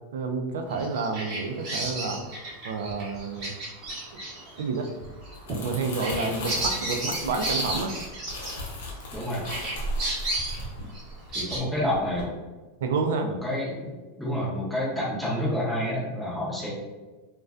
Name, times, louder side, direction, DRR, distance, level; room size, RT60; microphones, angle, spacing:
voice 1, 0.1-2.2 2.6-3.5 4.1-4.3 4.5-4.9 5.6-8.0 11.6-11.7 12.8-13.3, right 4 dB, 85° right, 5 dB, 0.3 m, -29 dB
Bird vocalization bird call bird song, 0.7-9.1 9.4-11.6, right 2 dB, 30° right, 0.8 m, -33 dB
Crumpling crinkling, 5.2-11.6 11.9-12.2, left 1 dB, 85° left, 0.7 m, -36 dB
voice 2, 9.1-9.4 11.3-12.3 13.2-13.9 14.2-16.7, equal, ahead, -8 dB, 0.6 m, -29 dB
2.4 x 2.2 x 2.3 m, 1.3 s
supercardioid pair, 170°, 0 cm